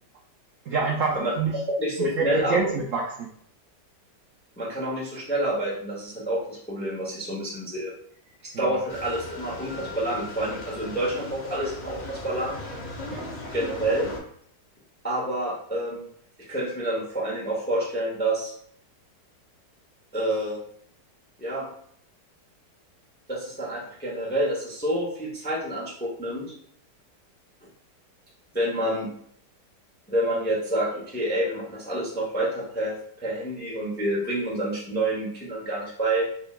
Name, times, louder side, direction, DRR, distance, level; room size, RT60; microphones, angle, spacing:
voice 1, 0.7-1.6 2.0-3.3 13.1-13.3, right 5 dB, 70° right, -1 dB, 0.7 m, -27 dB
voice 2, 1.8-2.6 4.6-7.9 8.4-12.6 13.5-14.1 15.0-16.1 16.5-18.5 20.1-20.6 21.4-21.7 23.3-26.5 28.5-29.1 30.1-36.3, right 1 dB, 10° left, -6 dB, 0.5 m, -28 dB
sound 1, 8.9-14.2, left 2 dB, 85° left, 0.4 m, -37 dB
3.8 x 3.2 x 2.4 m, 0.65 s
omnidirectional pair, 1.8 m